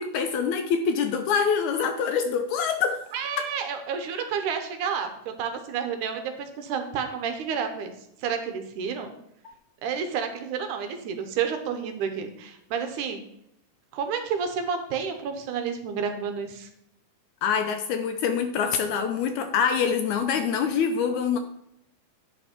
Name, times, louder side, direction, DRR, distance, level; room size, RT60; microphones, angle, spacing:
voice 1, 0.0-3.0 9.5-9.6 17.4-21.4, left 6 dB, 75° left, 6 dB, 1.8 m, -25 dB
voice 2, 3.1-7.9 8.2-9.1 9.8-13.2 13.9-16.7, right 6 dB, 75° right, 6 dB, 2.3 m, -30 dB
9.6 x 5.8 x 4.4 m, 0.75 s
omnidirectional pair, 3.8 m